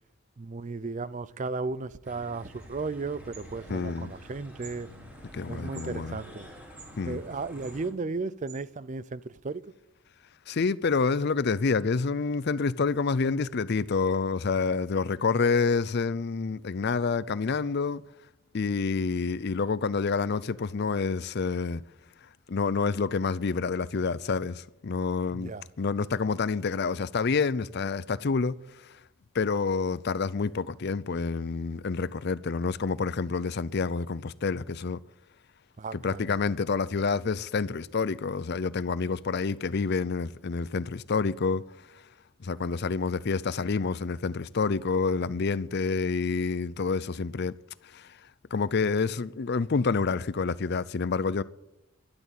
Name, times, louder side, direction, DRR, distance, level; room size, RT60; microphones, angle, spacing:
voice 1, 0.4-4.9 5.5-6.5 7.0-9.6 25.3-25.6 35.8-36.2, right 3 dB, 35° right, 0.4 m, -35 dB
sound 1, 2.0-7.9, equal, 10° right, 3.7 m, -47 dB
sound 2, 2.6-9.3, right 6 dB, 50° right, 3.4 m, -55 dB
voice 2, 3.7-4.1 5.3-6.2 7.0-7.2 10.5-18.0 18.5-21.8 22.5-25.5 25.8-28.9 29.3-35.0 35.9-41.6 42.4-47.6 47.8-48.2 48.5-51.4, left 4 dB, 50° left, 0.5 m, -28 dB
12.0 x 11.5 x 9.0 m
head